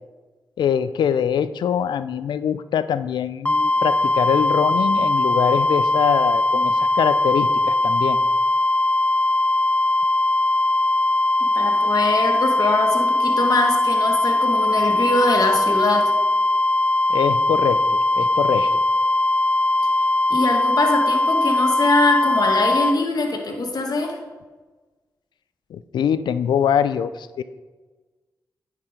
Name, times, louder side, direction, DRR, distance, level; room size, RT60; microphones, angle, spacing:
voice 1, 0.6-8.2 17.1-18.8 25.7-27.4, left 8 dB, 80° left, 13 dB, 0.4 m, -23 dB
sound 1, 3.4-23.0, left 2 dB, 20° left, 0.5 m, -20 dB
voice 2, 11.4-16.1 20.3-24.2, left 2 dB, 60° left, 2 dB, 1.6 m, -23 dB
9.6 x 4.8 x 5.1 m, 1.3 s
supercardioid pair, 45°, 8 cm